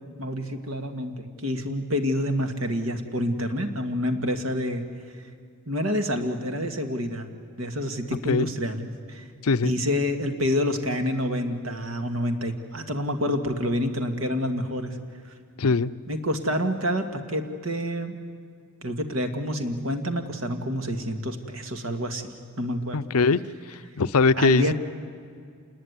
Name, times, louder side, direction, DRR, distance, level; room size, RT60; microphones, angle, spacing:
voice 1, 0.2-4.8 5.7-7.3 7.6-9.2 9.6-15.0 16.1-18.2 18.8-22.2 22.6-23.0 24.4-24.7, equal, 65° right, 6 dB, 2.0 m, -28 dB
voice 2, 15.6-15.9 22.9-23.4 23.7-24.7, left 4 dB, 80° left, 14 dB, 0.6 m, -21 dB
27.5 x 20.0 x 9.7 m, 2.1 s
head